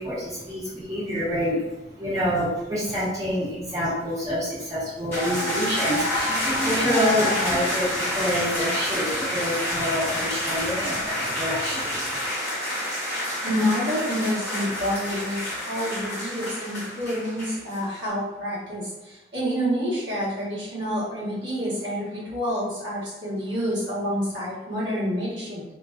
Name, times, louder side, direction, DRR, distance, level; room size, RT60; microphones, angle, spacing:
voice 1, 0.0-12.0, equal, 20° right, -11 dB, 0.9 m, -27 dB
sound 1, 5.1-17.8, left 1 dB, 15° left, 0.7 m, -28 dB
voice 2, 13.4-25.6, equal, 80° right, -8 dB, 1.0 m, -28 dB
2.4 x 2.2 x 2.3 m, 1.0 s
head